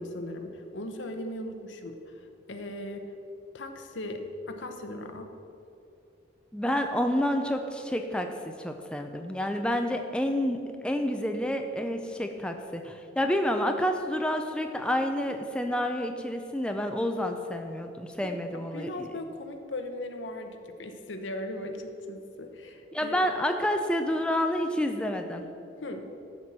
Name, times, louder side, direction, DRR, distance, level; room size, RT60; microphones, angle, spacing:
voice 1, 0.0-3.1 3.5-5.3 18.2-23.3 25.8-26.1, left 1 dB, 85° left, 5 dB, 1.0 m, -38 dB
voice 2, 6.5-19.1 22.9-25.5, equal, 5° left, 5 dB, 0.5 m, -29 dB
12.5 x 4.4 x 7.5 m, 2.7 s
head